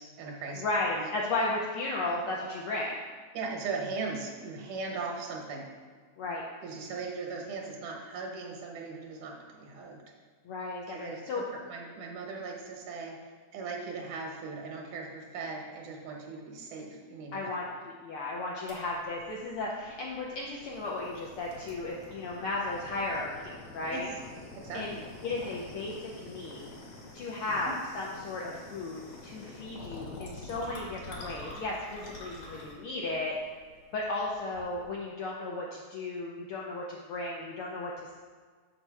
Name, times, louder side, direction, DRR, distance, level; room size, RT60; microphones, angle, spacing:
voice 1, 0.0-1.1 3.3-5.7 6.6-10.0 10.9-13.2 13.5-17.8 23.9-24.0 24.6-25.1 27.5-27.8, right 4 dB, 85° right, 0 dB, 2.5 m, -39 dB
voice 2, 0.6-3.0 6.2-6.4 10.5-11.4 17.3-17.6 18.0-24.1 24.7-25.0 25.2-26.7 27.1-33.3 33.9-38.2, left 2 dB, 80° left, -3 dB, 1.2 m, -35 dB
sound 1, 18.7-35.0, left 2 dB, 65° left, 2.6 m, -47 dB
6.6 x 5.8 x 4.7 m, 1.6 s
omnidirectional pair, 3.4 m